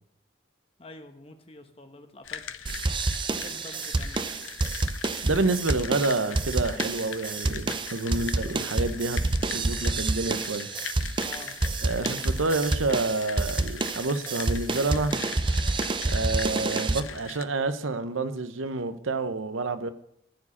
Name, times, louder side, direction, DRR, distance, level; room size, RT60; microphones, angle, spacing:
voice 1, 0.8-2.5 3.3-4.2 11.2-11.6, left 1 dB, 30° left, 6 dB, 1.0 m, -46 dB
sound 1, 2.2-17.4, left 8 dB, 80° left, 0.6 m, -41 dB
sound 2, 2.7-17.0, right 3 dB, 25° right, 0.5 m, -28 dB
voice 2, 5.2-9.2 9.5-10.7 11.8-15.2 16.0-19.9, right 3 dB, 85° right, 11 dB, 0.8 m, -28 dB
14.0 x 4.9 x 7.0 m, 0.74 s
head